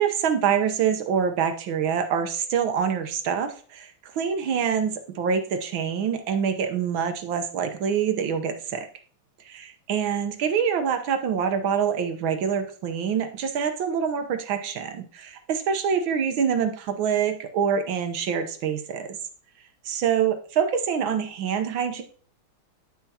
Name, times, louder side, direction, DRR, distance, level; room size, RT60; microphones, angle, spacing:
voice 1, 0.0-8.9 9.5-19.2 19.8-22.0, right 7 dB, 75° right, 7 dB, 1.6 m, -25 dB
9.6 x 6.1 x 2.8 m, 0.42 s
omnidirectional pair, 2.3 m